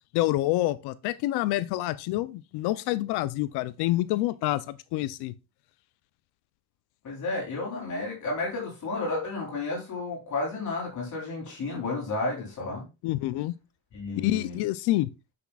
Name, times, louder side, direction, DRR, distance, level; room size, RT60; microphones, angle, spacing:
voice 1, 0.1-5.3 13.0-13.6 14.2-15.1, left 16 dB, 90° left, 0.5 m, -27 dB
voice 2, 7.0-12.9 13.9-14.6, left 3 dB, 50° left, 3.3 m, -32 dB
8.2 x 6.3 x 2.3 m
cardioid pair, 125°, 38 cm